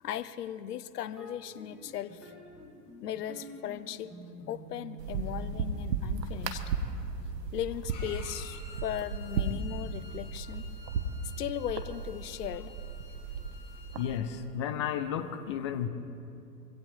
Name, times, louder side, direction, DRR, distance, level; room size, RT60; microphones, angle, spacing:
voice 1, 0.0-2.3 3.0-4.1 4.5-6.6 7.5-10.7 11.4-12.8, left 11 dB, 65° left, 15 dB, 0.8 m, -37 dB
sound 1, 1.1-10.9, equal, ahead, 3.1 m, -49 dB
sound 2, 5.0-14.2, right 4 dB, 75° right, 1.3 m, -36 dB
Bowed string instrument, 7.9-14.2, left 3 dB, 50° left, 3.8 m, -52 dB
voice 2, 14.0-15.9, left 9 dB, 20° left, 11 dB, 0.3 m, -33 dB
24.5 x 17.0 x 3.2 m, 2.6 s
figure-of-eight pair, 95°, 50 cm